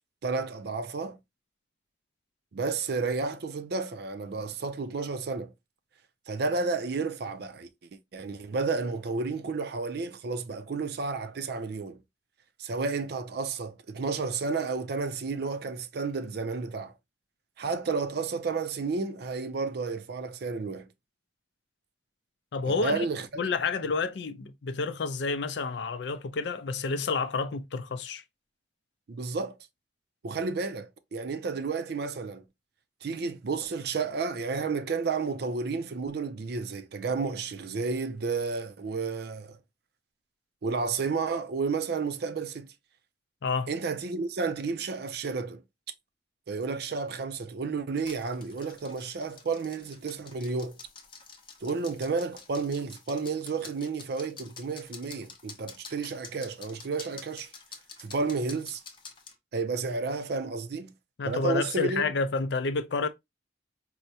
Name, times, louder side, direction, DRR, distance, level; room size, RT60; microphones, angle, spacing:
voice 1, 0.2-1.2 2.5-5.5 6.3-7.7 8.1-12.0 12.6-16.9 17.6-20.9 22.7-23.3 29.1-29.6 30.2-32.4 33.0-39.6 40.6-42.7 43.7-45.6 46.5-50.8 51.6-57.5 58.0-58.8 59.5-60.9 61.2-62.0, right 4 dB, 60° right, 0.4 m, -31 dB
voice 2, 22.5-23.1 23.4-28.2 43.4-43.7 61.2-63.1, left 4 dB, 70° left, 0.4 m, -29 dB
sound 1, 48.0-59.3, left 5 dB, 30° left, 0.6 m, -49 dB
4.6 x 2.1 x 2.7 m
head